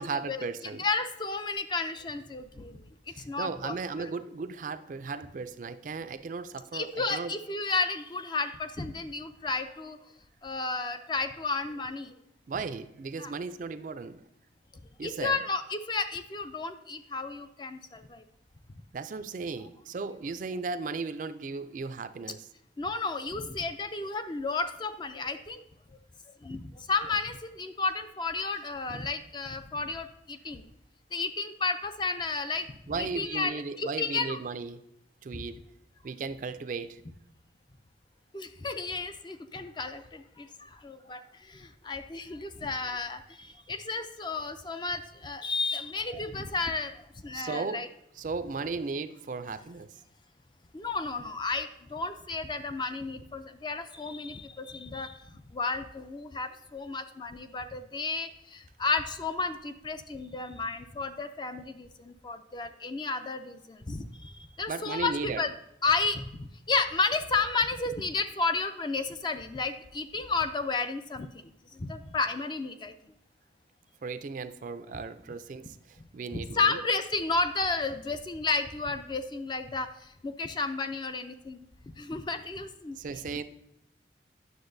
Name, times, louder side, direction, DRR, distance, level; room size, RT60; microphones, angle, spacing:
voice 1, 0.0-0.8 3.1-7.3 12.5-14.2 15.0-15.4 18.9-22.5 32.9-34.8 35.2-35.6 36.0-37.0 47.3-47.8 48.2-49.9 64.7-65.4 74.0-76.8 83.0-83.4, right 4 dB, 45° right, 11 dB, 0.3 m, -36 dB
voice 2, 0.8-4.1 6.7-10.0 10.4-12.1 13.2-13.3 15.0-18.2 22.8-25.6 26.4-30.6 31.1-32.7 33.0-34.4 35.3-35.4 38.3-47.9 50.7-65.5 65.8-72.9 76.3-81.7 82.0-83.0, left 3 dB, 25° left, 9 dB, 0.4 m, -32 dB
9.6 x 6.5 x 2.6 m, 0.83 s
head